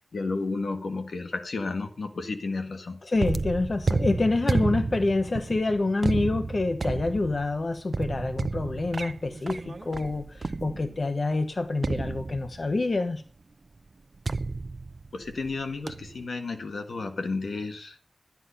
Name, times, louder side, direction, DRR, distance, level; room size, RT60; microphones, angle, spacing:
voice 1, 0.1-3.0 15.1-18.0, left 3 dB, 80° left, 6 dB, 1.8 m, -32 dB
voice 2, 3.0-13.2, left 2 dB, 55° left, 8 dB, 1.1 m, -27 dB
sound 1, 3.2-11.1 11.8-12.8 14.2-15.5 15.9-16.2, right 3 dB, 55° right, 0.6 m, -31 dB
12.5 x 9.4 x 5.6 m, 0.43 s
wide cardioid pair, 60°, 0 cm